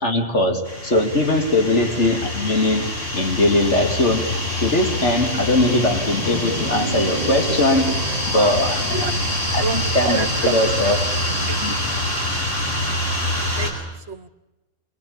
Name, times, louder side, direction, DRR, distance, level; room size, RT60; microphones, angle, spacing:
voice 1, 0.0-8.0 8.3-9.1 9.5-11.0 11.6-11.8, left 1 dB, 70° left, 4 dB, 2.9 m, -21 dB
sound 1, 0.6-13.7, left 1 dB, 50° left, 8.2 m, -25 dB
sound 2, 6.0-9.0, right 2 dB, 35° right, 1.2 m, -32 dB
voice 2, 9.6-10.6 11.5-11.6 13.6-14.3, right 6 dB, 65° right, 13 dB, 1.4 m, -27 dB
27.5 x 22.0 x 8.7 m, 1.1 s
omnidirectional pair, 1.2 m